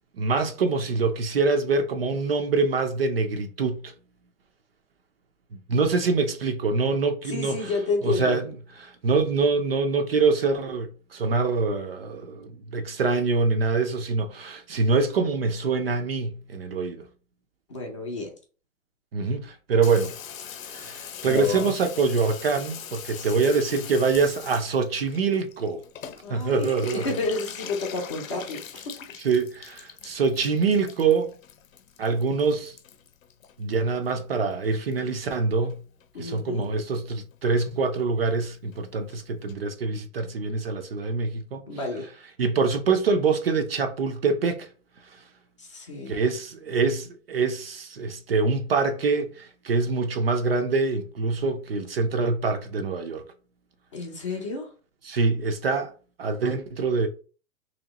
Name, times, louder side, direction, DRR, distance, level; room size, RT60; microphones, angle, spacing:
voice 1, 0.1-3.9 5.7-7.7 8.0-8.5 8.8-17.1 19.1-20.1 20.6-25.8 26.3-27.0 29.2-31.3 32.0-32.8 33.6-35.8 36.2-41.6 42.4-44.7 45.0-45.2 46.1-53.2 55.0-55.9 56.2-57.1, right 4 dB, 45° right, 0.5 m, -25 dB
voice 2, 7.3-8.4 17.7-18.3 23.1-23.4 26.2-28.8 36.1-36.7 41.7-42.1 45.6-46.2 53.9-54.7, left 3 dB, 25° left, 0.6 m, -30 dB
Water tap faucet / Bathtub (filling or washing), 19.8-34.4 34.6-35.4 35.7-35.8 36.0-36.1 36.3-36.7 37.0-37.1 37.3-37.4 37.7-37.8 38.0-38.1 38.3-38.4 38.7-38.8 39.1-39.2 39.5-39.6, left 8 dB, 75° left, 0.8 m, -40 dB
3.0 x 2.9 x 3.9 m
hypercardioid pair, 170°, 41 cm